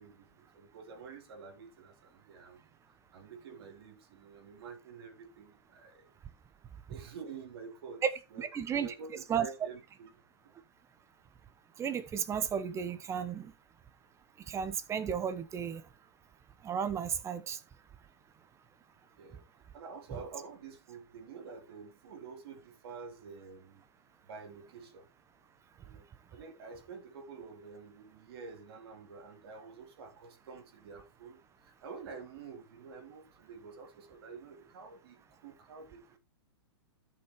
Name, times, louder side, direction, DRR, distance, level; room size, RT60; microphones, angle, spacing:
voice 1, 0.0-2.7 3.1-6.1 6.9-8.0 8.3-10.1 10.4-10.5 19.2-19.5 19.7-23.8 24.2-25.1 25.8-26.1 26.3-36.2, right 5 dB, 60° right, 3.7 m, -49 dB
voice 2, 8.4-8.9 9.3-9.5 11.8-13.5 14.5-15.8 16.6-17.6, right 7 dB, 20° right, 1.0 m, -33 dB
13.5 x 5.9 x 3.0 m
hypercardioid pair, 120°, 14 cm